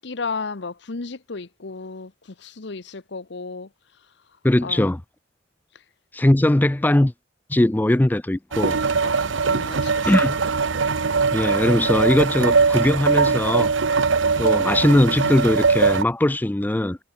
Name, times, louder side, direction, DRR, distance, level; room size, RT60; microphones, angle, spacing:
voice 1, 0.0-4.1 4.6-4.9 5.7-5.8 9.0-10.4 10.9-11.0, left 4 dB, 65° left, 1.0 m, -34 dB
voice 2, 4.4-5.0 6.1-7.1 7.5-8.8 10.0-10.3 11.3-13.7 14.4-17.0, left 1 dB, 10° left, 0.4 m, -20 dB
sound 1, 8.5-16.0, right 4 dB, 85° right, 0.8 m, -21 dB
head